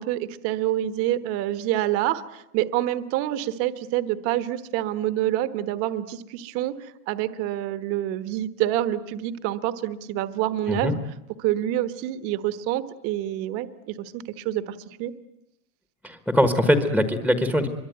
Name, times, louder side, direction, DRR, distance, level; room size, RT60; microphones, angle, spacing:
voice 1, 0.0-11.0 11.4-15.1, right 13 dB, 30° right, 13 dB, 1.3 m, -27 dB
voice 2, 16.0-17.7, equal, ahead, 8 dB, 1.3 m, -22 dB
25.0 x 23.0 x 9.3 m, 0.81 s
supercardioid pair, 165°, 45 cm